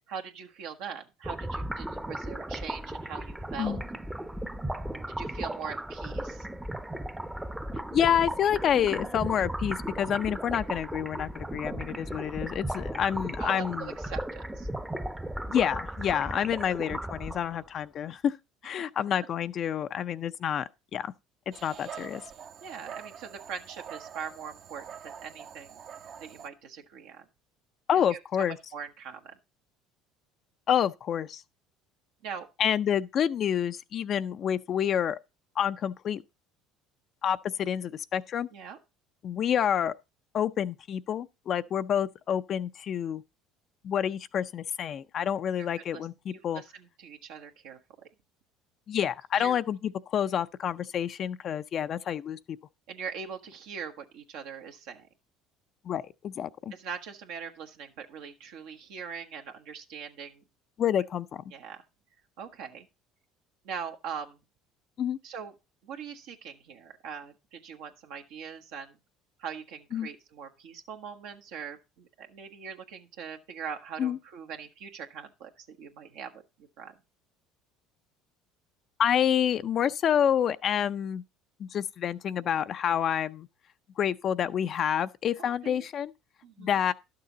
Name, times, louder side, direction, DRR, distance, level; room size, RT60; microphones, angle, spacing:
voice 1, 0.1-3.8 5.2-6.5 13.4-14.7 18.8-18.9 22.6-25.8 26.2-27.2 28.1-28.2 28.7-29.4 32.2-32.5 38.5-38.8 45.6-45.7 45.9-46.0 46.3-47.8 49.4-49.6 52.9-55.1 56.7-60.4 61.5-61.8 62.4-62.9 63.6-64.4 65.2-65.5 65.8-69.0 69.4-76.4 76.8-76.9 85.4-85.8 86.4-86.8, right 7 dB, 75° right, 1.3 m, -41 dB
sound 1, 1.2-17.7, right 1 dB, 10° right, 0.7 m, -36 dB
voice 2, 7.9-13.9 15.5-18.3 18.6-20.6 20.9-21.1 21.6-22.2 27.9-28.6 30.7-31.4 32.6-35.2 35.6-36.2 37.2-38.5 39.2-39.9 40.3-43.2 43.8-46.6 48.9-52.4 55.9-56.7 60.8-61.4 65.0-65.2 69.9-70.1 74.0-74.2 79.0-81.2 81.6-83.5 84.0-86.1 86.6-86.9, left 9 dB, 50° left, 0.4 m, -28 dB
Dog, 21.5-26.5, right 8 dB, 55° right, 0.9 m, -45 dB
11.5 x 6.7 x 3.9 m
supercardioid pair, 85°, 0 cm